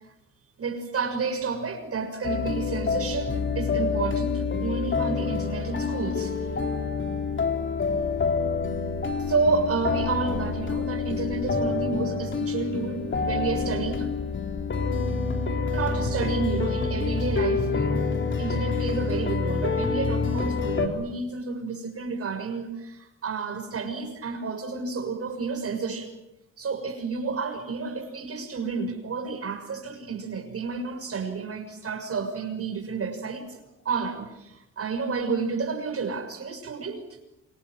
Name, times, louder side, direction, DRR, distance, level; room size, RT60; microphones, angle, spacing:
voice 1, 0.6-6.6 9.2-14.1 15.7-26.1 26.6-33.6 33.8-37.0, right 4 dB, 50° right, 6 dB, 6.6 m, -30 dB
sound 1, 2.2-20.9, left 4 dB, 40° left, 3.9 m, -27 dB
28.0 x 27.0 x 7.8 m, 0.91 s
cardioid pair, 90°, 30 cm